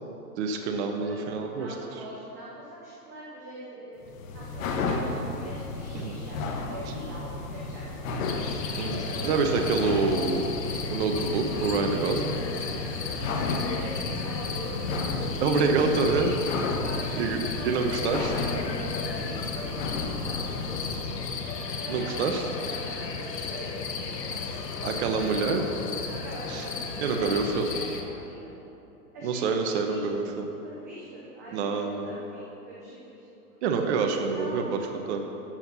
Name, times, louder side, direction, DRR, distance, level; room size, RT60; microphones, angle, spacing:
voice 1, 0.4-1.7 5.9-6.1 8.8-10.4 10.9-12.4 15.4-16.3 17.2-17.4 17.6-18.3 21.9-22.4 24.8-25.6 26.5-26.6 27.0-27.7 29.2-30.5 31.5-32.1 33.6-34.6 35.1-35.2, right 4 dB, 45° right, 4 dB, 1.0 m, -26 dB
voice 2, 0.9-1.3 1.5-4.0 4.3-9.7 13.1-15.3 15.9-16.2 16.8-17.3 17.6-22.8 23.1-25.4 26.1-28.5 29.1-30.0 30.6-33.6 34.2-34.7, right 1 dB, 10° right, -6 dB, 0.4 m, -44 dB
sound 1, 4.0-21.2, left 3 dB, 55° left, 1.3 m, -34 dB
sound 2, 8.2-28.0, left 5 dB, 85° left, 1.3 m, -34 dB
13.0 x 4.5 x 6.9 m, 2.9 s
hypercardioid pair, 140°, 48 cm